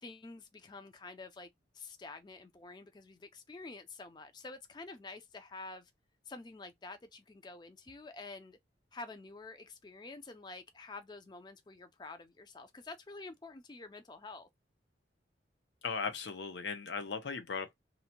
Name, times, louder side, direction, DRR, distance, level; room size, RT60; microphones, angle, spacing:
voice 1, 0.0-1.5 1.7-5.9 6.3-8.6 8.9-14.5, left 3 dB, 25° left, 0.4 m, -48 dB
voice 2, 15.8-17.7, left 5 dB, 75° left, 0.5 m, -37 dB
2.7 x 2.1 x 2.8 m
head